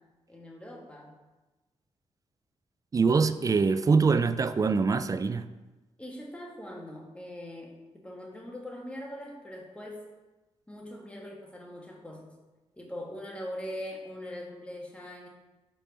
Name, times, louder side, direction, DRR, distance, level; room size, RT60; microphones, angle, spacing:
voice 1, 0.3-1.1 6.0-10.0 10.7-12.3 12.7-15.3, left 1 dB, 10° left, -1 dB, 1.4 m, -41 dB
voice 2, 2.9-5.5, right 4 dB, 30° right, 12 dB, 0.4 m, -24 dB
5.3 x 4.3 x 5.2 m, 1.1 s
cardioid pair, 85°, 11 cm